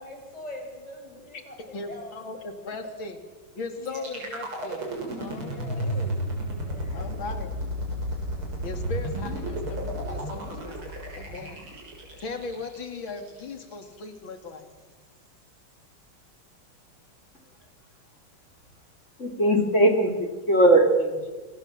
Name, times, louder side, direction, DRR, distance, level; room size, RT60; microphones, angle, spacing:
voice 1, 0.0-2.1 3.8-4.2 5.3-5.9 6.6-7.1 7.6-7.7, left 1 dB, 15° left, 1 dB, 7.7 m, -43 dB
voice 2, 1.7-3.2 3.6-6.2 6.9-7.5 8.6-11.6 12.2-14.6, left 3 dB, 65° left, 6 dB, 3.6 m, -38 dB
sound 1, 3.9-13.8, equal, 85° right, 7.2 m, -32 dB
voice 3, 19.2-21.3, right 1 dB, 35° left, 5 dB, 3.7 m, -20 dB
28.0 x 27.0 x 7.6 m, 1.3 s
omnidirectional pair, 2.3 m